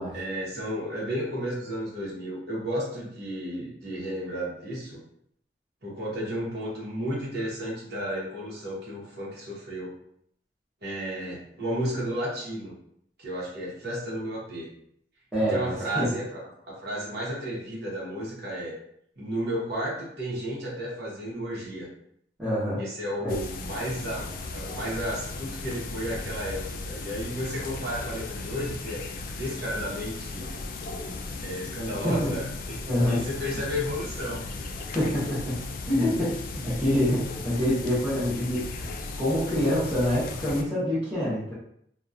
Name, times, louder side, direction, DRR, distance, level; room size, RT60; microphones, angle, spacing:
voice 1, 0.1-5.0 5.8-10.0 10.8-12.7 13.2-14.7 15.5-16.4 16.7-18.7 19.2-21.9 22.8-29.1 29.3-30.6 31.4-32.8 33.0-34.7, equal, 65° right, -5 dB, 1.0 m, -33 dB
voice 2, 15.3-16.1 22.4-22.8 23.2-23.4 32.0-32.3 32.9-33.3 34.9-41.5, left 1 dB, 5° right, -13 dB, 0.9 m, -26 dB
sound 1, 23.3-40.6, left 3 dB, 50° left, 0.3 m, -36 dB
2.8 x 2.3 x 2.4 m, 0.69 s
head